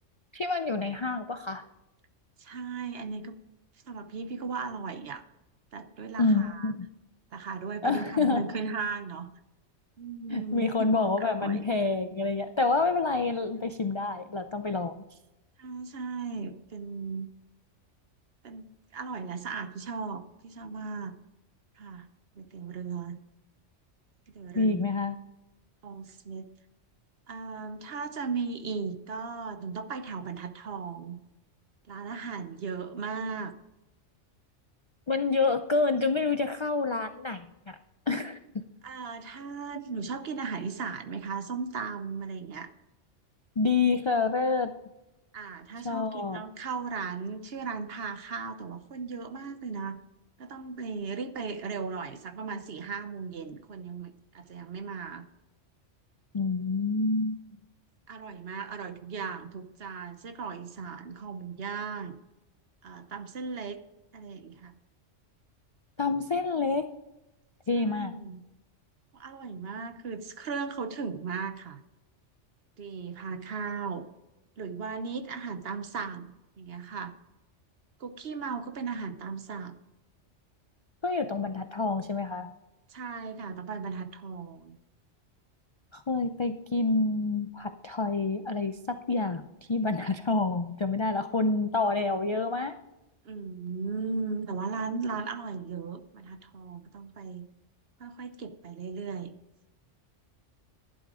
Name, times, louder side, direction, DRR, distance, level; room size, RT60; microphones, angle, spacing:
voice 1, 0.3-1.6 6.2-6.9 7.8-8.5 10.3-15.0 24.5-25.2 35.1-37.8 38.1-38.7 43.6-44.7 45.8-46.4 56.3-57.6 66.0-66.9 67.7-68.1 81.0-82.5 85.9-89.4 89.7-92.8, left 3 dB, 50° left, 8 dB, 0.3 m, -28 dB
voice 2, 2.4-3.3 3.9-5.2 5.7-6.7 7.3-9.3 10.0-10.7 11.2-11.6 13.6-13.7 15.6-17.3 18.4-21.1 21.8-22.1 22.4-23.2 24.3-24.8 25.8-26.5 27.3-31.2 31.9-33.5 38.8-42.7 45.3-50.0 50.4-55.3 58.1-62.2 62.8-63.8 64.1-64.7 67.7-68.4 69.1-71.8 72.8-74.1 74.6-77.1 78.0-79.7 82.9-84.8 93.2-97.5 98.0-99.3, right 5 dB, 55° right, 9 dB, 1.0 m, -37 dB
12.0 x 11.0 x 3.7 m, 0.98 s
omnidirectional pair, 1.3 m